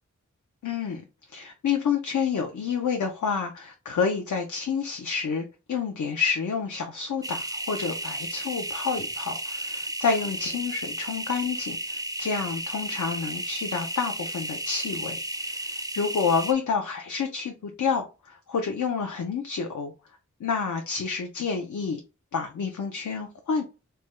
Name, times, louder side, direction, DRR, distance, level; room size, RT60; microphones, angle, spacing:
voice 1, 0.6-1.0 1.3-19.9 20.4-22.0 22.3-23.6, left 5 dB, 70° left, 0.5 m, -29 dB
sound 1, 7.2-16.5, right 1 dB, 10° right, 0.4 m, -33 dB
3.3 x 2.1 x 3.0 m
wide cardioid pair, 65°, 30 cm